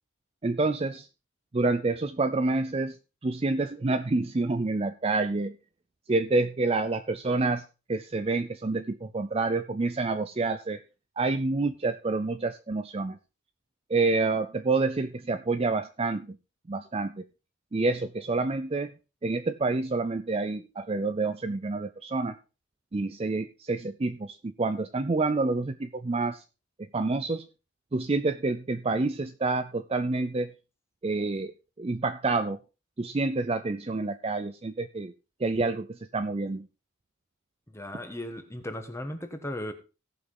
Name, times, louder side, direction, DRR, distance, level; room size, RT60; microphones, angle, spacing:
voice 1, 0.4-1.1 1.5-3.0 3.2-5.6 6.1-7.6 7.9-10.8 11.2-13.2 13.9-16.4 16.7-17.3 17.7-18.9 19.2-22.4 22.9-26.4 26.8-27.5 27.9-30.5 31.0-31.5 31.8-32.6 33.0-35.1 35.4-36.7, right 3 dB, 25° right, 9 dB, 0.4 m, -28 dB
voice 2, 37.7-39.7, left 1 dB, 10° left, 6 dB, 1.3 m, -36 dB
17.0 x 5.9 x 3.8 m, 0.31 s
head